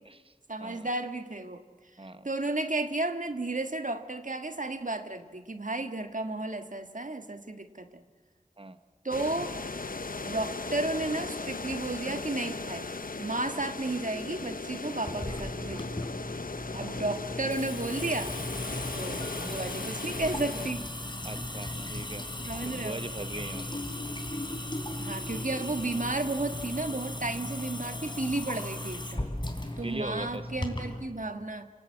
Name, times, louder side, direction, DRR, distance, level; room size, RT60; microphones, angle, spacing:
voice 1, 0.5-1.6 2.2-8.0 9.0-9.6 10.2-12.9 13.2-15.9 16.7-18.3 18.9-20.9 22.4-23.0 25.0-29.3 29.8-31.7, right 2 dB, 65° right, 8 dB, 1.6 m, -33 dB
sound 1, 9.1-20.7, left 3 dB, 80° left, 0.8 m, -37 dB
Water tap faucet / Sink (filling or washing) / Drip, 15.1-31.0, left 1 dB, 35° left, 3.6 m, -37 dB
voice 2, 21.2-22.3 22.6-23.8 29.8-30.5, right 2 dB, 40° right, 10 dB, 1.1 m, -40 dB
29.0 x 18.0 x 8.5 m, 1.5 s
wide cardioid pair, 40°, 14 cm